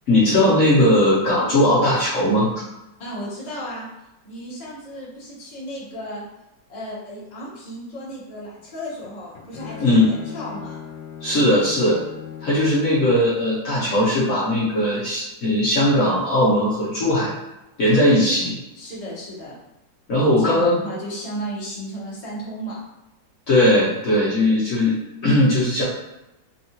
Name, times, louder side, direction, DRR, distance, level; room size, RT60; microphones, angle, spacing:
voice 1, 0.1-2.5 9.8-10.1 11.2-12.0 12.4-17.3 17.8-18.6 20.1-20.8 23.5-25.8, left 1 dB, 55° left, -8 dB, 1.1 m, -18 dB
voice 2, 3.0-3.9 4.2-6.2 6.7-10.8 18.0-18.4 18.7-19.6 20.4-22.8, equal, 30° left, -7 dB, 0.9 m, -34 dB
Bowed string instrument, 9.0-13.2, left 8 dB, 85° left, 1.4 m, -38 dB
3.6 x 2.3 x 2.8 m, 0.93 s
omnidirectional pair, 1.9 m